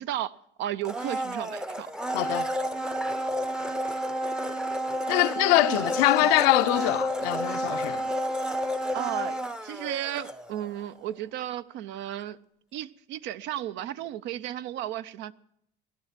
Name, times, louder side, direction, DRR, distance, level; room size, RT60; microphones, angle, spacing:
voice 1, 0.0-1.9 5.6-5.8 6.2-6.3 8.9-12.4 12.7-15.3, right 12 dB, 60° right, 0.6 m, -34 dB
Domestic sounds home sounds, 0.8-10.8 11.1-11.2, equal, 5° right, 0.6 m, -30 dB
voice 2, 2.1-2.5 5.1-8.1, left 19 dB, 80° left, 0.6 m, -23 dB
16.5 x 11.5 x 5.7 m
supercardioid pair, 105°, 21 cm